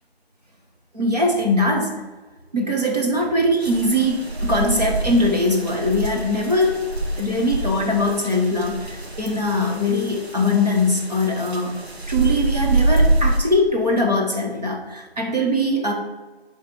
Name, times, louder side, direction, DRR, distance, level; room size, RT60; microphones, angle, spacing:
voice 1, 0.9-2.0 2.5-6.8 7.2-11.8 12.1-15.9, left 1 dB, 40° right, -1 dB, 1.3 m, -21 dB
sound 1, 3.6-13.4, right 2 dB, 80° right, 1.4 m, -25 dB
7.4 x 3.4 x 6.1 m, 1.3 s
figure-of-eight pair, 170°, 31 cm